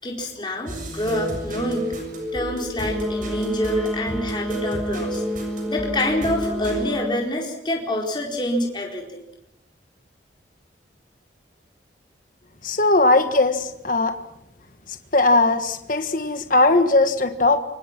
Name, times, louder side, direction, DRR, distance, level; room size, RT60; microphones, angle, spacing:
voice 1, 0.0-1.9 2.3-5.2 5.7-9.2, left 1 dB, 25° left, 0 dB, 4.5 m, -26 dB
sound 1, 0.7-6.8, equal, 45° right, 7.2 m, -31 dB
Wind instrument woodwind instrument, 2.9-7.3, equal, ahead, 0.9 m, -31 dB
voice 2, 12.6-14.1 15.1-17.6, left 2 dB, 45° left, 8 dB, 1.6 m, -19 dB
28.0 x 24.5 x 6.1 m, 0.82 s
head